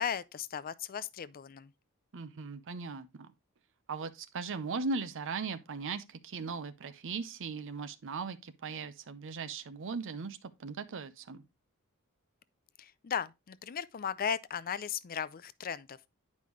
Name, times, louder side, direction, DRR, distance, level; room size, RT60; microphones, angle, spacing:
voice 1, 0.0-1.7 12.8-16.0, left 8 dB, 40° left, 0.4 m, -36 dB
voice 2, 2.1-3.3 3.9-11.4, right 4 dB, 60° right, 0.6 m, -38 dB
9.5 x 5.3 x 3.1 m
head